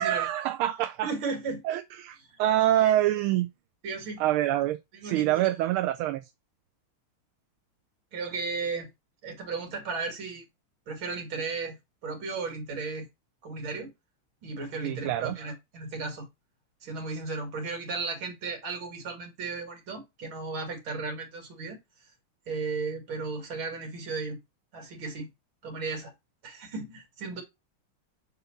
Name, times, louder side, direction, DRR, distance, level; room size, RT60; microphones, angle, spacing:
voice 1, 0.0-1.1 1.6-3.5 4.2-6.3 14.8-15.4, right 13 dB, 85° right, 1.4 m, -26 dB
voice 2, 1.0-1.6 2.8-2.9 3.8-4.2 4.9-5.5 8.1-8.9 9.2-10.4 10.9-11.8 12.0-13.1 13.4-13.9 14.4-16.3 16.8-21.8 22.5-24.4 24.7-25.3 25.6-26.1 26.4-27.4, right 4 dB, 70° right, 3.0 m, -35 dB
6.6 x 4.0 x 4.5 m
omnidirectional pair, 2.3 m